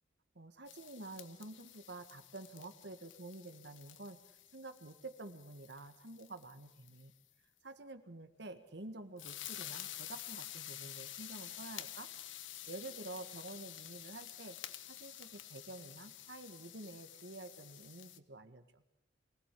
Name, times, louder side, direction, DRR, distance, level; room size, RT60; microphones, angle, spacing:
voice 1, 0.3-4.2 4.5-7.1 7.6-12.1 12.7-14.6 14.9-18.8, right 2 dB, 65° right, 10 dB, 1.7 m, -49 dB
sound 1, 0.7-7.0 9.2-18.2, left 12 dB, 85° left, 1.1 m, -50 dB
23.5 x 17.0 x 8.4 m, 0.83 s
head